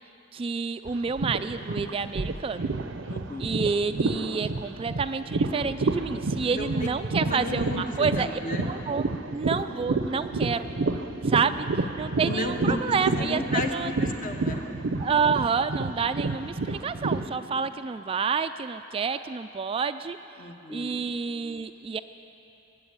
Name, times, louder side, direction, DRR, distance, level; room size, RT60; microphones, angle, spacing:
voice 1, 0.3-2.7 3.4-8.4 8.7-9.1 9.3-10.7 11.2-13.9 15.0-20.2 20.7-22.0, right 5 dB, 30° right, 10 dB, 0.3 m, -29 dB
sound 1, 0.9-17.3, right 3 dB, 85° right, 0.6 m, -29 dB
voice 2, 3.1-3.6 6.5-6.7 7.2-8.7 11.3-11.4 12.3-13.7 14.2-14.6 20.4-21.0, left 2 dB, 45° left, 3 dB, 1.3 m, -33 dB
21.0 x 7.7 x 8.8 m, 2.9 s
head